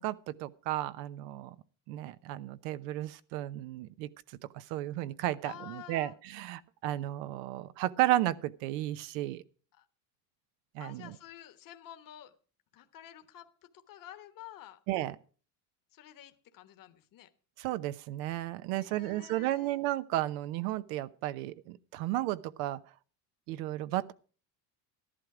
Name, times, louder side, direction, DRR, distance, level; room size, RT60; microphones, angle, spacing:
voice 1, 0.0-1.5 1.9-4.1 4.5-9.4 10.7-11.1 14.9-15.2 17.6-22.8 23.5-24.1, right 15 dB, 90° right, 0.9 m, -33 dB
voice 2, 5.4-6.2 9.7-9.9 10.8-12.3 12.7-14.8 15.9-17.3 18.7-19.8, left 11 dB, 45° left, 1.2 m, -50 dB
13.0 x 11.5 x 4.9 m
cardioid pair, 120°, 46 cm